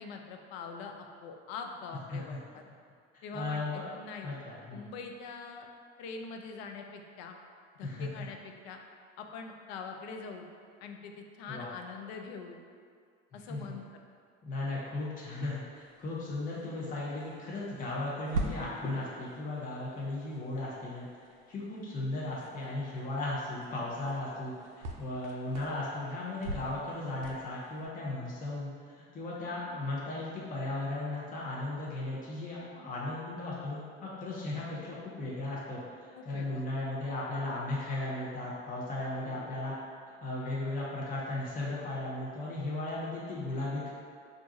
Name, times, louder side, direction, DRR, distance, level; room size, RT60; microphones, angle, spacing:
voice 1, 0.0-2.6 3.2-4.3 4.7-5.7 6.0-7.4 7.8-8.8 9.2-10.5 10.8-12.6 13.3-13.8 34.7-34.9 36.1-36.7 39.2-39.5, left 4 dB, 65° left, 4 dB, 0.5 m, -43 dB
voice 2, 3.1-3.9 4.2-4.9 7.8-8.3 11.5-11.7 13.3-13.8 14.4-21.1 21.5-35.8 36.2-39.7 40.2-43.9, left 2 dB, 25° left, -6 dB, 0.6 m, -36 dB
sound 1, 15.7-27.9, right 2 dB, 85° right, 0.5 m, -44 dB
2.5 x 2.3 x 4.0 m, 2.2 s
hypercardioid pair, 75°, 34 cm